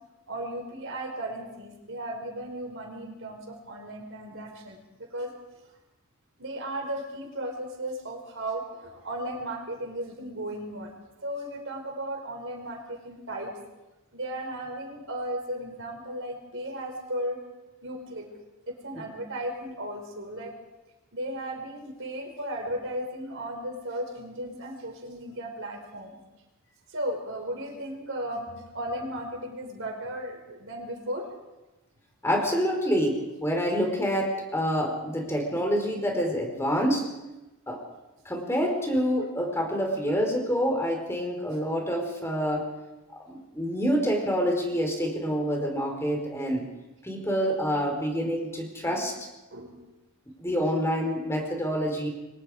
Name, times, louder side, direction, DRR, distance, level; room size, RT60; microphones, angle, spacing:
voice 1, 0.3-5.3 6.4-10.9 11.2-13.5 14.1-17.4 17.8-18.3 18.7-20.5 21.1-26.2 26.9-31.3 39.4-39.5 39.9-40.0 48.8-49.1 49.5-49.9, right 1 dB, 55° right, 2 dB, 5.1 m, -35 dB
voice 2, 32.2-37.1 37.7-37.8 38.2-42.7 43.3-46.7 47.0-49.1 50.4-52.1, equal, 10° left, 2 dB, 4.3 m, -27 dB
29.5 x 23.5 x 5.0 m, 1.0 s
head